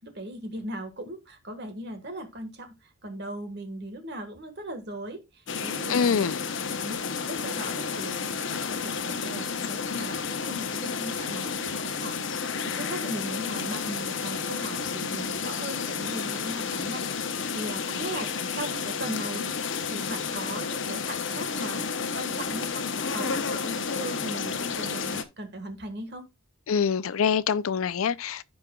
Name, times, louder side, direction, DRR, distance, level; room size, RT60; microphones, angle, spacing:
voice 1, 0.0-2.7 3.0-5.2 5.6-6.3 6.8-7.0 7.3-17.0 17.5-19.5 19.9-26.3, right 1 dB, 50° right, 1.6 m, -38 dB
sound 1, 5.5-25.2, left 5 dB, 60° left, 0.8 m, -31 dB
voice 2, 5.9-6.4 26.7-28.4, left 6 dB, 75° left, 0.5 m, -25 dB
15.5 x 5.2 x 2.3 m
head